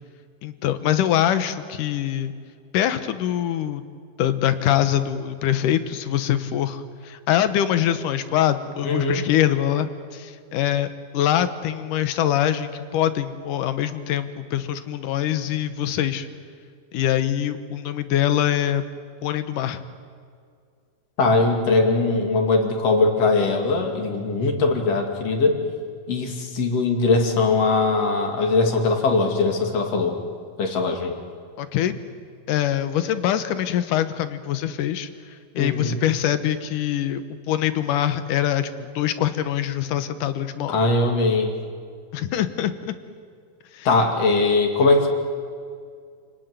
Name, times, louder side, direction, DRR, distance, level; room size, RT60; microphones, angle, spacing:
voice 1, 0.4-2.3 2.7-3.8 4.2-10.9 11.1-16.3 16.9-18.8 19.2-19.8 31.6-31.9 32.5-40.8 42.1-42.9 43.7-43.9, left 11 dB, 70° left, 11 dB, 2.5 m, -24 dB
voice 2, 8.8-9.2 21.2-25.6 26.1-30.1 30.6-31.1 35.5-36.0 40.7-41.5 43.8-45.1, left 3 dB, 45° left, 3 dB, 3.4 m, -20 dB
29.0 x 19.0 x 9.5 m, 2.2 s
omnidirectional pair, 4.2 m